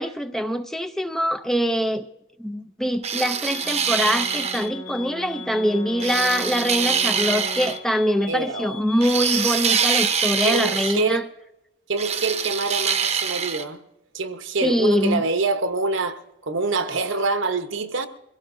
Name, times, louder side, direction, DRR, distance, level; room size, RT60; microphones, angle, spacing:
voice 1, 0.0-2.1 2.4-11.2 14.6-15.2, equal, ahead, 0.4 m, -23 dB
sound 1, 3.0-4.7 6.0-7.8 9.0-11.0 12.0-13.6, right 7 dB, 35° right, 0.8 m, -24 dB
sound 2, 3.5-10.3, left 11 dB, 70° left, 2.5 m, -40 dB
Brass instrument, 3.6-7.9, left 1 dB, 35° left, 1.7 m, -39 dB
voice 2, 8.3-8.8 10.4-11.2 11.9-13.8 14.1-18.1, right 3 dB, 70° right, 1.0 m, -25 dB
23.0 x 16.5 x 2.6 m
head